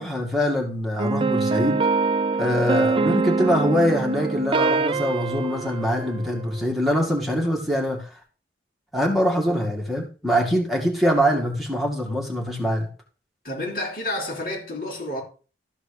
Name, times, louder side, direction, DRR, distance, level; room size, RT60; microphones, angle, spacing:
voice 1, 0.0-1.9 2.4-8.1 8.9-12.9, equal, ahead, 2.2 m, -23 dB
sound 1, 1.0-6.6, right 4 dB, 30° right, 0.4 m, -24 dB
voice 2, 13.4-15.2, left 1 dB, 55° left, 4.6 m, -30 dB
13.5 x 4.9 x 6.6 m
head